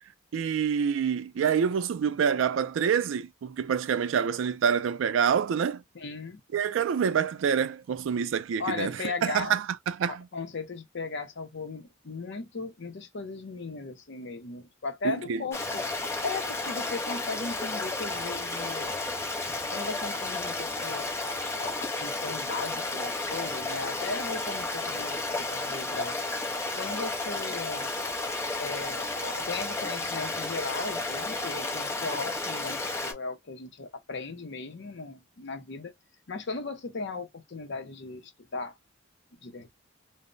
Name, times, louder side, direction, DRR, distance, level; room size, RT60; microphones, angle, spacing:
voice 1, 0.3-5.8 6.5-10.3 15.0-15.4, right 7 dB, 70° right, 0.3 m, -27 dB
voice 2, 5.9-6.4 8.6-9.6 10.1-15.8 16.2-19.0 19.7-21.1 21.6-26.2 26.8-27.9 28.6-35.9 36.3-38.8 39.4-39.7, left 3 dB, 60° left, 0.6 m, -37 dB
Stream, 15.5-33.1, left 2 dB, 15° left, 0.5 m, -32 dB
2.1 x 2.0 x 3.7 m
head